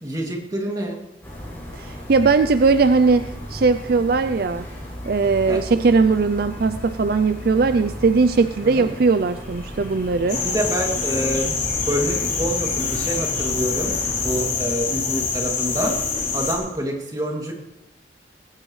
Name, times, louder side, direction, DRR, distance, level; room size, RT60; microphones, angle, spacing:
voice 1, 0.0-1.0 5.5-5.6 8.6-8.9 10.4-11.5 11.9-15.9 16.3-17.5, right 1 dB, 20° right, -1 dB, 2.6 m, -27 dB
sound 1, 1.2-14.4, equal, 15° left, 7.1 m, -35 dB
voice 2, 1.8-4.7 5.1-10.4, right 4 dB, 60° right, 11 dB, 0.4 m, -19 dB
sound 2, 10.3-16.5, left 5 dB, 40° left, 3.8 m, -25 dB
20.0 x 15.5 x 3.2 m, 0.92 s
head